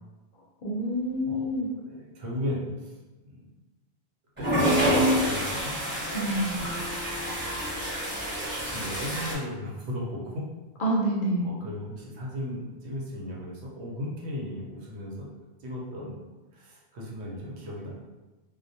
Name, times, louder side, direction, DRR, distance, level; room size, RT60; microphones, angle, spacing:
voice 1, 0.6-1.7 6.1-6.5 10.8-11.5, right 1 dB, 60° left, -4 dB, 0.6 m, -27 dB
voice 2, 1.9-2.9 3.2-3.5 4.4-5.8 6.5-6.8 8.7-10.4 11.4-15.3 15.6-16.2 16.5-18.0, left 1 dB, 85° right, -3 dB, 0.9 m, -36 dB
sound 1, 4.4-9.3, equal, 10° right, 0.9 m, -27 dB
sound 2, 6.6-9.9, left 3 dB, 55° right, 0.9 m, -45 dB
2.2 x 2.1 x 2.6 m, 1.1 s
omnidirectional pair, 1.1 m